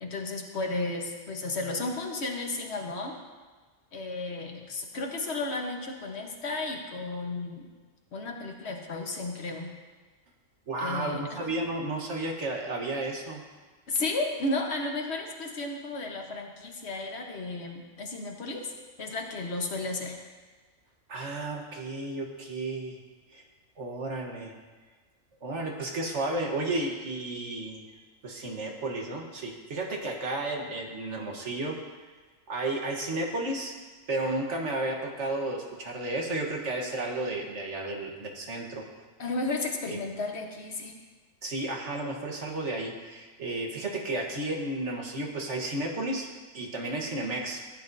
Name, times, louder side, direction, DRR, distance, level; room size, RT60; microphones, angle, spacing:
voice 1, 0.0-3.2 3.9-7.7 8.1-9.7 10.8-11.5 13.9-18.7 19.0-20.2 39.2-40.9, left 2 dB, 55° left, 1 dB, 1.4 m, -33 dB
voice 2, 10.7-13.4 21.1-23.0 23.3-23.4 23.8-24.5 25.4-27.8 28.2-31.8 32.5-33.7 34.1-38.8 39.9-40.0 41.4-46.3 46.5-47.6, right 2 dB, 60° right, 1 dB, 1.5 m, -32 dB
15.0 x 8.5 x 2.7 m, 1.4 s
omnidirectional pair, 1.4 m